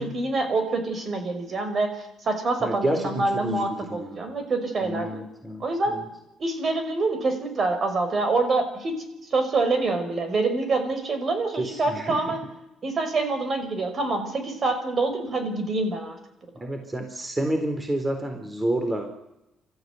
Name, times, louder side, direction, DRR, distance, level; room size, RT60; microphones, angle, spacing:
voice 1, 0.0-5.1 5.6-5.9 6.4-9.0 9.3-12.4 12.8-16.2, right 3 dB, 45° right, 7 dB, 5.7 m, -26 dB
voice 2, 2.6-4.3 4.8-6.0 11.5-12.3 16.5-19.3, right 1 dB, 20° right, 5 dB, 4.1 m, -29 dB
27.5 x 14.5 x 9.5 m, 0.91 s
cardioid pair, 90°, 0 cm